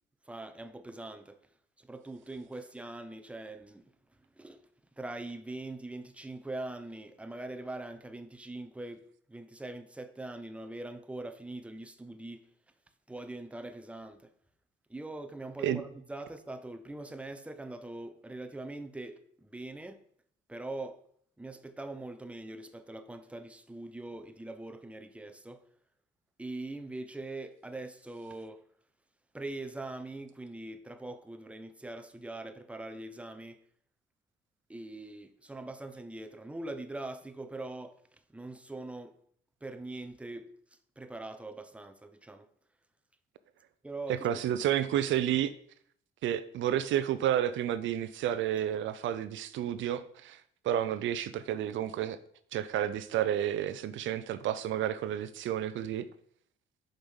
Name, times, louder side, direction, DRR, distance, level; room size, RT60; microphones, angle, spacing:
voice 1, 0.3-1.4 1.8-3.8 4.4-4.6 5.0-12.4 13.1-14.3 14.9-20.0 20.5-21.0 21.4-25.6 26.4-28.6 29.3-33.6 34.7-38.0 38.3-39.2 39.6-40.5 41.0-42.5 43.8-44.6, right 2 dB, 5° right, 0.7 m, -42 dB
voice 2, 44.1-45.5 46.2-50.4 50.6-52.2 52.5-56.1, right 11 dB, 75° right, 0.5 m, -30 dB
5.2 x 5.1 x 6.2 m
cardioid pair, 90°, 20 cm